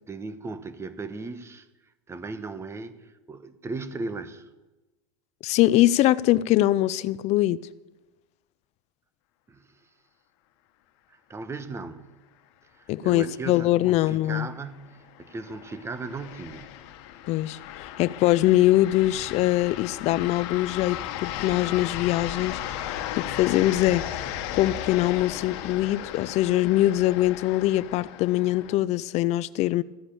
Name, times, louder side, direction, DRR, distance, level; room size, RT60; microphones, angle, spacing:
voice 1, 0.1-1.7 2.1-4.5 9.5-9.7 11.1-12.1 12.7-16.8, right 3 dB, 15° right, 1.2 m, -37 dB
voice 2, 5.4-7.7 12.9-14.5 17.3-24.3 24.5-29.8, left 15 dB, 45° left, 0.5 m, -23 dB
sound 1, 13.9-28.7, left 11 dB, 65° left, 1.4 m, -36 dB
14.5 x 10.0 x 7.2 m
hypercardioid pair, 105°, 15 cm